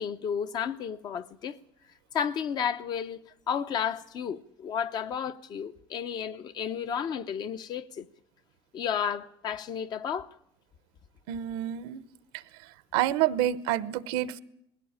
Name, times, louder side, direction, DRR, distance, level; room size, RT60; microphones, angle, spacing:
voice 1, 0.0-1.6 2.1-8.1 8.7-10.3, left 8 dB, 45° left, 0.9 m, -32 dB
voice 2, 11.3-12.0 12.9-14.4, right 13 dB, 85° right, 0.9 m, -28 dB
20.0 x 16.0 x 8.7 m
cardioid pair, 125°, 10 cm